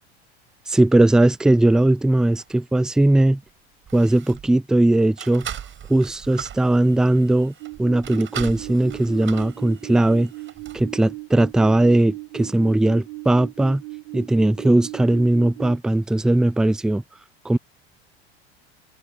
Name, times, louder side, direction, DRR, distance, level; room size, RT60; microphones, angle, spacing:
voice 1, 0.7-3.4 3.9-5.5 5.9-7.5 7.8-10.3 10.7-13.8 14.1-17.0 17.4-17.6, right 1 dB, ahead, 0.4 m, -19 dB
sound 1, 2.4-2.5 3.4-3.5 3.8-4.5 5.2-10.9 11.5-11.6, right 9 dB, 35° right, 4.7 m, -39 dB
sound 2, 7.6-15.8, right 23 dB, 65° right, 3.0 m, -37 dB
figure-of-eight pair, 75°, 34 cm